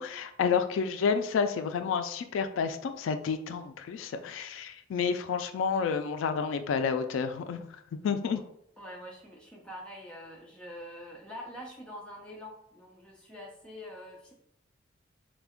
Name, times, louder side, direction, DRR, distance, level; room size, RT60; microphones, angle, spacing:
voice 1, 0.0-7.7 8.0-8.4, left 6 dB, 85° left, 9 dB, 0.3 m, -30 dB
voice 2, 8.8-14.3, equal, 5° left, -3 dB, 0.6 m, -45 dB
3.3 x 2.2 x 3.5 m, 0.74 s
head